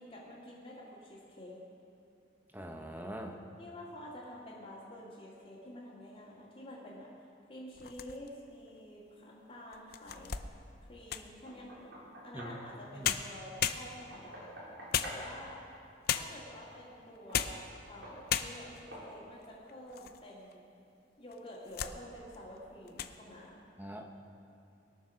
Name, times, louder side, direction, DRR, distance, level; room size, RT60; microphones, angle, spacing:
voice 1, 0.0-1.6 3.6-7.1 7.5-10.4 10.9-11.8 12.2-14.5 15.0-15.6 16.1-20.6 21.2-23.6, left 1 dB, 30° left, -9 dB, 2.4 m, -49 dB
voice 2, 2.5-3.4 12.3-12.5 12.9-13.2 23.8-24.0, right 1 dB, 10° right, 3 dB, 1.0 m, -43 dB
sound 1, 7.7-8.5 9.1-9.2 9.7-11.4 12.7-12.8 13.0-14.3 14.9-15.6 16.1-16.5 17.1-17.7 18.0-18.1 18.3-18.9 19.4-20.2 20.5-20.6 21.3-22.0 22.3-22.6 22.9-23.2, left 9 dB, 55° left, 0.5 m, -35 dB
Knock, 11.5-12.6 14.1-15.3 17.3-17.5 18.0-18.2 18.9-19.1, equal, 85° right, 4.2 m, -47 dB
21.5 x 7.2 x 6.3 m, 2.5 s
head